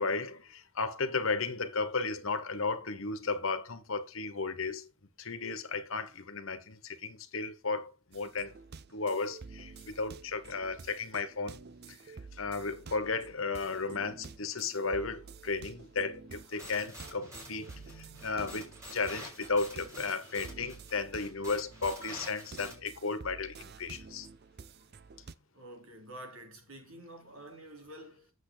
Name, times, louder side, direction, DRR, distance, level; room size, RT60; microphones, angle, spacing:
voice 1, 0.0-4.9 5.2-8.5 8.9-11.6 11.9-24.3, left 4 dB, 70° left, 1.3 m, -34 dB
sound 1, 8.1-25.3, right 4 dB, 50° right, 0.6 m, -50 dB
sound 2, 16.6-22.7, equal, 15° right, 5.7 m, -48 dB
voice 2, 25.5-28.3, right 1 dB, 85° right, 3.6 m, -48 dB
8.6 x 7.6 x 3.9 m
head